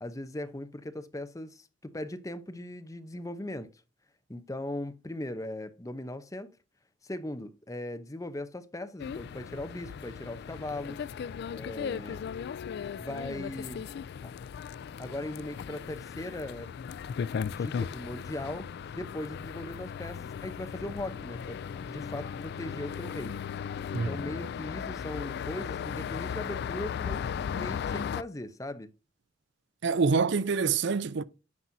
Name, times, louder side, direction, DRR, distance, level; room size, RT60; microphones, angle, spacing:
voice 1, 0.0-3.7 4.3-6.5 7.0-11.0 11.5-12.2 13.0-13.8 14.2-14.3 15.0-16.7 17.4-18.7 18.9-21.6 21.8-23.4 23.9-27.2 27.5-28.9, left 1 dB, 15° left, 0.8 m, -39 dB
sound 1, 9.0-28.2, left 7 dB, 55° left, 0.3 m, -37 dB
voice 2, 29.8-31.2, right 5 dB, 65° right, 0.5 m, -26 dB
9.6 x 6.0 x 2.7 m
head